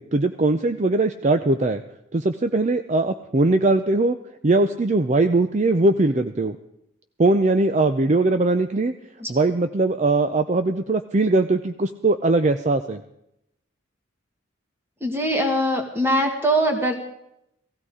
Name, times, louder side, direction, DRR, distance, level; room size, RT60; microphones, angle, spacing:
voice 1, 0.0-1.8 2.1-4.2 4.4-6.6 7.2-8.9 9.3-13.0, right 2 dB, 35° right, 9 dB, 0.5 m, -20 dB
voice 2, 15.0-16.9, right 1 dB, 10° right, 3 dB, 2.0 m, -22 dB
17.5 x 15.5 x 4.9 m, 0.81 s
head